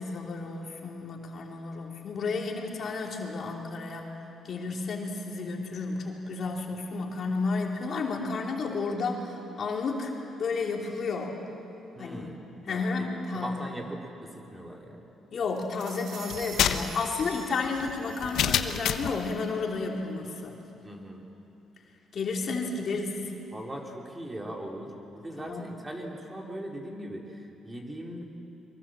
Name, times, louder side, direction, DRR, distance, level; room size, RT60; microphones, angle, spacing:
voice 1, 0.0-4.2 4.4-10.1 10.4-11.4 12.0-12.3 12.7-13.7 15.3-20.6 22.1-23.3 25.4-25.7, left 4 dB, 55° left, 0 dB, 3.2 m, -32 dB
voice 2, 11.9-12.4 12.6-13.1 13.3-15.1 20.8-21.3 23.5-28.2, right 1 dB, 20° right, 0 dB, 3.3 m, -40 dB
sound 1, 15.5-19.5, right 4 dB, 70° right, 3.2 m, -46 dB
sound 2, 16.3-19.2, left 9 dB, 75° left, 1.0 m, -28 dB
23.5 x 23.0 x 7.6 m, 3.0 s
cardioid pair, 90°, 0 cm